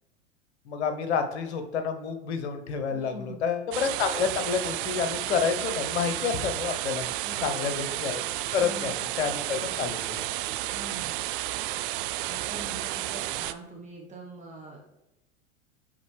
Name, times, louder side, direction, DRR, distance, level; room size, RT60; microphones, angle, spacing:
voice 1, 0.7-7.1 7.4-8.2 8.5-10.2, left 6 dB, 65° left, 8 dB, 1.0 m, -29 dB
voice 2, 2.9-3.5 7.2-7.7 8.6-9.0 9.5-9.9 10.7-11.2 12.3-14.8, right 2 dB, 20° right, -2 dB, 1.3 m, -43 dB
sound 1, 3.7-13.5, right 15 dB, 50° right, 0.4 m, -32 dB
11.0 x 3.7 x 3.3 m, 0.96 s
figure-of-eight pair, 90°, 35 cm